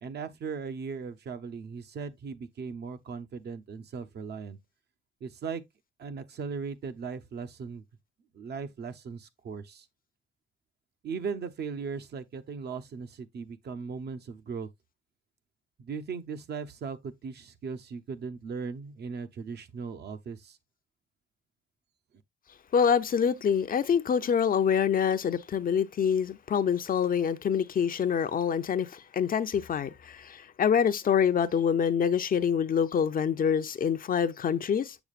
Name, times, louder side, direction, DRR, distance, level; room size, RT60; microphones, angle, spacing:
voice 1, 0.0-4.6 5.2-5.6 6.0-7.8 8.3-9.9 11.0-14.7 15.8-20.6, right 5 dB, 55° right, 0.9 m, -38 dB
voice 2, 22.7-35.0, left 7 dB, 45° left, 0.6 m, -26 dB
7.1 x 6.4 x 2.4 m
cardioid pair, 90°, 20 cm